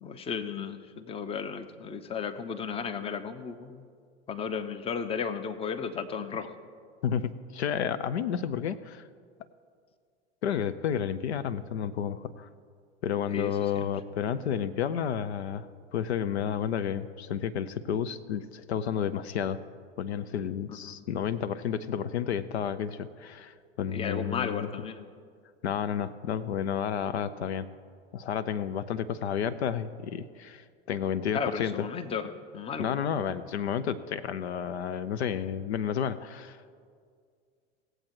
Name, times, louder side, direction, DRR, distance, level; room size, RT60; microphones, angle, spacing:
voice 1, 0.0-3.9 4.3-6.5 13.3-13.9 20.7-21.0 23.9-25.1 31.3-33.0, left 6 dB, 15° left, 10 dB, 0.7 m, -34 dB
voice 2, 7.0-9.1 10.4-12.5 13.0-19.6 20.0-24.7 25.6-27.7 28.1-31.9 32.8-36.6, left 8 dB, 70° left, 14 dB, 0.6 m, -31 dB
17.5 x 7.8 x 4.6 m, 2.1 s
figure-of-eight pair, 85°, 34 cm